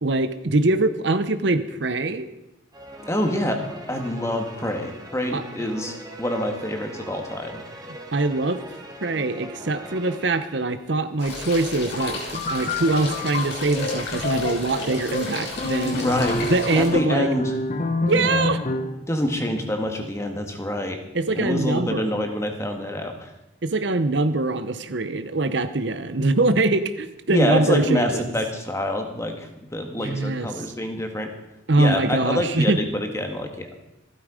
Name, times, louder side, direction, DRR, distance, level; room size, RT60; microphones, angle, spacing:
voice 1, 0.0-2.3 5.3-5.4 8.1-8.6 9.0-16.0 16.4-17.3 18.0-18.6 21.1-22.2 23.6-28.3 30.0-30.6 31.7-32.8, right 2 dB, 65° right, 11 dB, 0.8 m, -23 dB
sound 1, 2.7-11.3, right 1 dB, 20° right, 1.7 m, -41 dB
voice 2, 3.1-3.6 3.9-7.6 15.8-16.5 16.8-17.5 18.1-18.5 19.1-21.0 21.3-23.3 27.3-31.3 31.8-33.8, left 1 dB, 15° left, 4 dB, 1.7 m, -26 dB
sound 2, 11.2-16.9, left 2 dB, 65° left, 6.0 m, -33 dB
sound 3, 12.0-19.1, left 2 dB, 40° left, 1.0 m, -29 dB
15.5 x 12.5 x 5.0 m, 0.89 s
head